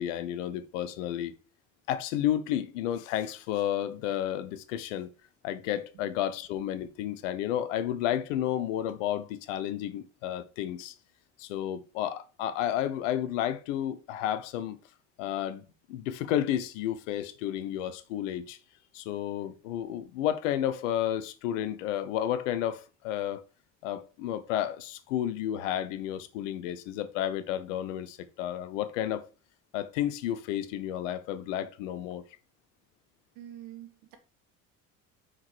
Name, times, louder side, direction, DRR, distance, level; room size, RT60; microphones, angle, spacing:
voice 1, 0.0-1.3 1.9-5.1 5.4-10.9 11.4-14.8 15.2-15.6 15.9-18.6 18.9-23.4 23.8-29.3 29.7-32.2, left 11 dB, 75° left, 0.9 m, -31 dB
voice 2, 33.4-34.2, right 12 dB, 70° right, 1.8 m, -45 dB
5.8 x 4.9 x 4.7 m
hypercardioid pair, 60°, 38 cm